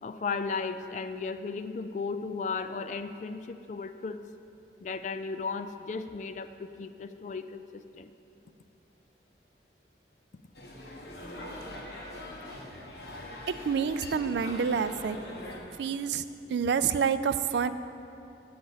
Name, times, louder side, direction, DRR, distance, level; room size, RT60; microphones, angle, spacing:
voice 1, 0.0-4.2 4.8-8.1, left 4 dB, 40° left, 10 dB, 0.3 m, -35 dB
sound 1, 10.5-15.6, left 1 dB, 65° left, 1.2 m, -42 dB
voice 2, 13.6-15.2 15.8-16.2 16.5-17.7, right 6 dB, 75° right, 13 dB, 0.3 m, -27 dB
9.5 x 8.6 x 3.9 m, 2.7 s
head